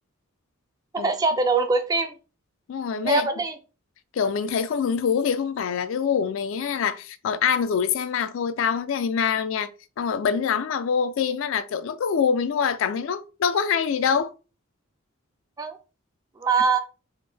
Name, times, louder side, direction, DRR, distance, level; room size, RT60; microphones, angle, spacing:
voice 1, 0.9-2.1 3.0-3.6 15.6-15.8 16.4-16.8, right 4 dB, 15° right, 0.3 m, -22 dB
voice 2, 2.7-3.3 4.1-9.7 10.0-14.3, left 6 dB, 65° left, 0.3 m, -25 dB
3.4 x 2.1 x 3.4 m
head